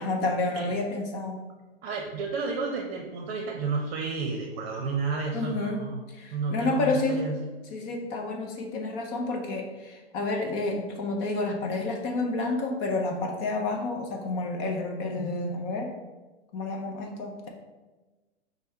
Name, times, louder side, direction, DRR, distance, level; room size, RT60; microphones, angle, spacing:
voice 1, 0.0-1.4 5.3-7.2 7.7-15.9 16.5-17.5, left 2 dB, 30° left, 2 dB, 0.5 m, -30 dB
voice 2, 1.8-6.0 6.3-7.5, right 4 dB, 50° right, 2 dB, 0.7 m, -31 dB
5.3 x 2.2 x 4.4 m, 1.2 s
hypercardioid pair, 125°, 34 cm